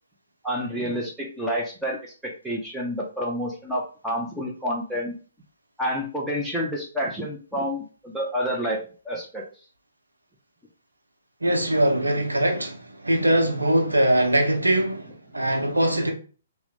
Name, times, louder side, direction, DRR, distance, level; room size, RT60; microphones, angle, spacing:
voice 1, 0.4-5.1 5.8-8.8 9.0-9.4, equal, 5° right, 0.5 m, -29 dB
voice 2, 11.4-12.8 13.0-16.1, right 1 dB, 85° right, 0.7 m, -22 dB
2.9 x 2.1 x 3.8 m
figure-of-eight pair, 130°, 0 cm